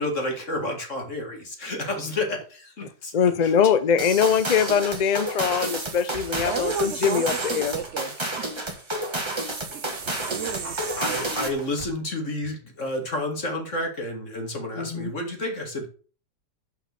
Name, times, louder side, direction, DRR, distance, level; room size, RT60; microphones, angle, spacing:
voice 1, 0.0-3.1 3.4-3.5 10.6-15.9, left 1 dB, 45° left, 2 dB, 2.2 m, -30 dB
voice 2, 3.1-7.7 14.7-15.1, left 7 dB, 80° left, 12 dB, 0.3 m, -22 dB
sound 1, 4.0-11.6, right 1 dB, 15° right, 1.3 m, -30 dB
sound 2, 5.6-8.0 9.3-11.9, right 6 dB, 40° right, 1.0 m, -38 dB
voice 3, 6.4-7.2 7.5-8.5 9.7-10.8 11.0-11.2, right 7 dB, 75° right, 10 dB, 0.6 m, -34 dB
6.1 x 5.7 x 6.8 m, 0.39 s
omnidirectional pair, 1.8 m